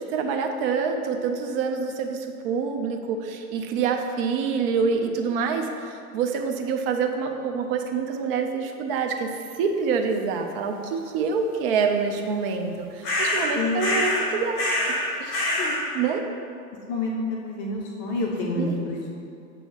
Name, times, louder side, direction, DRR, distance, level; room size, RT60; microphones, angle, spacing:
voice 1, 0.1-9.3 9.6-14.7 15.2-15.6 15.9-16.2 18.6-18.9, right 5 dB, 40° right, 4 dB, 0.6 m, -26 dB
sound 1, 13.0-13.5 13.8-14.3 14.6-15.0 15.3-15.8, left 1 dB, 15° left, 0.3 m, -24 dB
voice 2, 16.9-19.1, left 2 dB, 35° left, -1 dB, 0.8 m, -28 dB
7.2 x 2.8 x 5.5 m, 2.5 s
hypercardioid pair, 125°, 47 cm